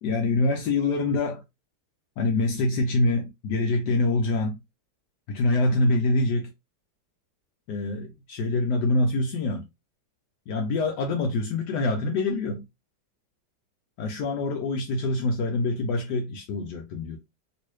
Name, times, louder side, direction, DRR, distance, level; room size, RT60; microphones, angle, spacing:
voice 1, 0.0-1.4 2.2-4.6 5.3-6.5 7.7-9.7 10.5-12.6 14.0-17.2, left 2 dB, 75° left, 1.2 m, -25 dB
2.9 x 2.9 x 3.1 m
omnidirectional pair, 1.8 m